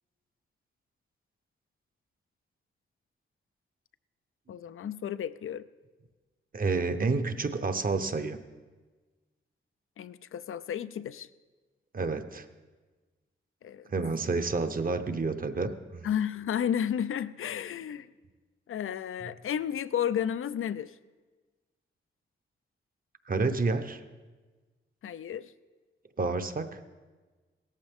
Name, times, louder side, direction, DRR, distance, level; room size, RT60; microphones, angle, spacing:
voice 1, 4.5-5.6 10.0-11.3 13.6-13.9 16.0-18.1 18.7-20.9 25.0-25.5, left 9 dB, 80° left, 15 dB, 0.5 m, -32 dB
voice 2, 6.5-8.4 11.9-12.5 13.9-16.1 23.3-24.0 26.2-26.8, right 3 dB, 45° right, 9 dB, 0.8 m, -29 dB
17.0 x 14.0 x 3.6 m, 1.3 s
wide cardioid pair, 100°, 21 cm